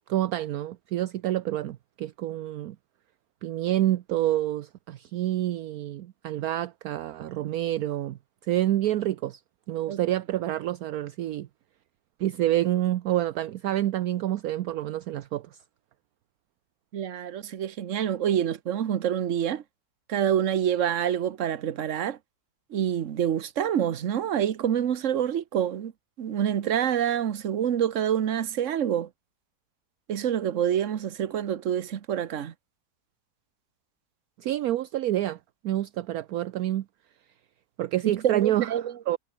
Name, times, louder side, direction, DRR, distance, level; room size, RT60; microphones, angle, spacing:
voice 1, 0.1-2.8 3.4-9.4 9.7-11.5 12.2-15.6 34.4-35.4 35.6-36.8 37.8-38.7 39.1-39.2, right 13 dB, 70° right, 1.1 m, -28 dB
voice 2, 16.9-19.6 20.1-22.2 22.7-25.9 26.2-29.1 30.1-32.5 38.0-38.9, right 9 dB, 55° right, 1.3 m, -27 dB
omnidirectional pair, 1.7 m